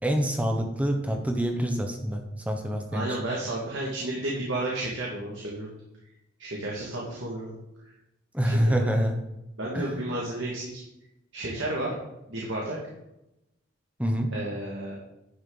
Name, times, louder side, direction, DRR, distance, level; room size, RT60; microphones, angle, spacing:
voice 1, 0.0-3.2 8.3-9.2 9.7-10.0 14.0-14.3, equal, 5° right, 3 dB, 1.0 m, -26 dB
voice 2, 2.9-5.7 6.4-7.5 8.4-8.9 9.6-10.8 11.3-11.9 12.3-12.8 14.3-15.0, right 1 dB, 70° right, -4 dB, 2.0 m, -32 dB
11.0 x 6.6 x 4.0 m, 0.88 s
head